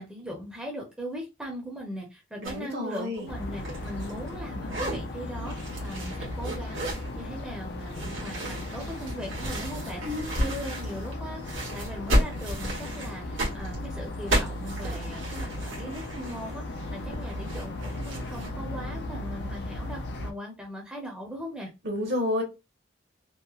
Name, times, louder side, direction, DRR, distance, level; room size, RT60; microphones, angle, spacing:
voice 1, 0.0-5.5 5.8-11.4 11.7-21.7, equal, 5° right, -2 dB, 0.6 m, -39 dB
voice 2, 2.4-3.3 10.0-10.5 21.8-22.4, left 1 dB, 55° right, 3 dB, 0.9 m, -30 dB
sound 1, 2.4-2.6 2.9-4.4 4.6-5.0 5.5-7.1 7.9-11.2 11.4-18.5, equal, 85° right, 1.2 m, -33 dB
sound 2, 3.3-20.3, left 1 dB, 55° left, 0.4 m, -36 dB
2.9 x 2.1 x 2.3 m, 0.26 s
head